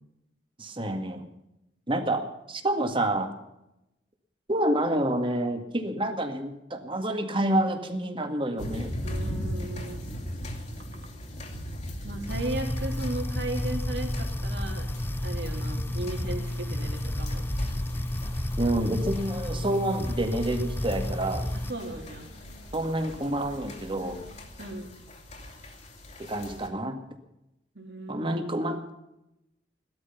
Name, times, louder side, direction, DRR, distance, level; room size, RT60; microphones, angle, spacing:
voice 1, 0.6-1.3 1.9-3.3 4.5-8.9 18.6-21.5 22.7-24.2 26.2-27.0 28.1-28.9, right 1 dB, 30° right, 6 dB, 2.0 m, -28 dB
sound 1, 8.6-26.7, equal, 40° left, 2.8 m, -40 dB
voice 2, 9.0-10.0 12.0-14.9 15.2-17.4 21.7-22.3 24.6-24.9 27.8-28.3, right 2 dB, 70° right, 2 dB, 3.5 m, -36 dB
sound 2, 12.3-21.7, left 1 dB, 10° left, 0.5 m, -31 dB
sound 3, 14.7-24.5, equal, 75° left, 5.3 m, -48 dB
16.5 x 13.0 x 5.8 m, 0.88 s
head